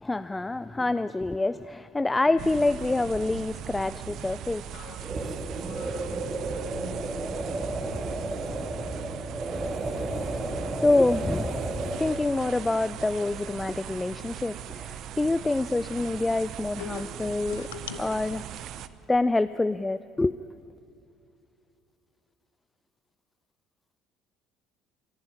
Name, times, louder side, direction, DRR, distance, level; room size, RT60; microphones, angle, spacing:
voice 1, 0.0-4.7 10.8-11.6 12.0-17.7 18.0-18.4 19.1-20.4, left 2 dB, 15° left, 0.4 m, -26 dB
sound 1, 2.4-18.9, right 10 dB, 55° right, 0.7 m, -40 dB
sound 2, 4.7-7.6 7.9-8.1 8.7-9.2, equal, 55° left, 3.3 m, -47 dB
sound 3, 5.0-12.4, right 2 dB, 25° right, 2.5 m, -32 dB
voice 2, 16.8-18.0, left 9 dB, 75° left, 1.1 m, -39 dB
25.5 x 11.0 x 9.9 m
figure-of-eight pair, 55°, 0 cm